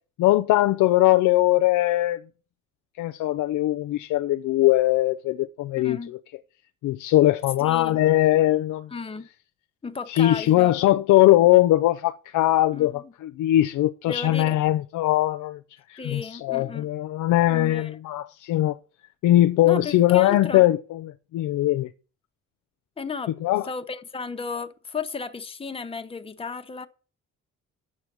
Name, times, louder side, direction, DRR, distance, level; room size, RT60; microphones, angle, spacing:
voice 1, 0.2-2.2 3.0-6.2 6.8-8.9 10.1-15.6 15.9-18.7 19.2-21.9 23.4-23.7, left 15 dB, 80° left, 0.6 m, -21 dB
voice 2, 5.8-6.1 7.6-8.0 8.9-9.3 9.8-10.7 12.7-13.1 14.1-14.6 16.0-16.9 17.5-18.0 19.6-20.6 23.0-23.3 23.6-26.9, left 4 dB, 20° left, 0.9 m, -34 dB
8.5 x 6.9 x 6.1 m
cardioid pair, 90°, 30 cm